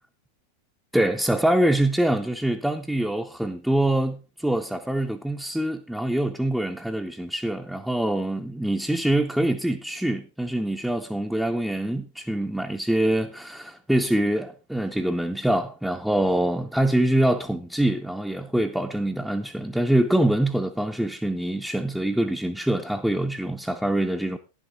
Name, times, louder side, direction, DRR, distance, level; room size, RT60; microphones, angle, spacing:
voice 1, 0.9-24.4, right 1 dB, ahead, 0.8 m, -24 dB
11.0 x 11.0 x 3.8 m
figure-of-eight pair, 90°, 0 cm